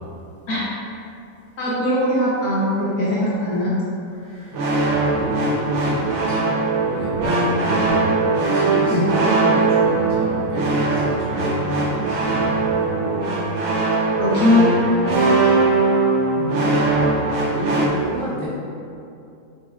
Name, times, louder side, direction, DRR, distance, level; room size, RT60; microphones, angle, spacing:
voice 1, 1.6-3.8 8.9-9.1 14.1-14.7 16.3-16.5, left 1 dB, 65° left, -8 dB, 1.2 m, -20 dB
voice 2, 4.2-8.0 8.5-13.5 13.8-13.9 14.1-15.4 16.4-17.1 17.5-18.5, equal, 5° left, -11 dB, 0.5 m, -30 dB
sound 1, 4.5-17.9, right 3 dB, 75° right, 0.6 m, -20 dB
4.8 x 4.2 x 2.3 m, 2.5 s
omnidirectional pair, 1.8 m